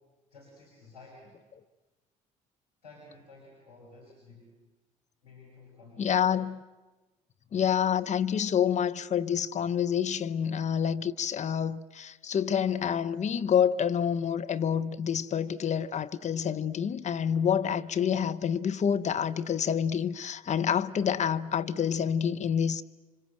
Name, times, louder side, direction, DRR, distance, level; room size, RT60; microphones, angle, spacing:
voice 1, 0.3-1.4 2.8-4.5 5.2-6.3, left 2 dB, 85° left, 5.6 m, -52 dB
voice 2, 6.0-6.6 7.5-22.8, left 8 dB, 40° left, 0.9 m, -28 dB
27.5 x 25.5 x 7.9 m
figure-of-eight pair, 55°, 19 cm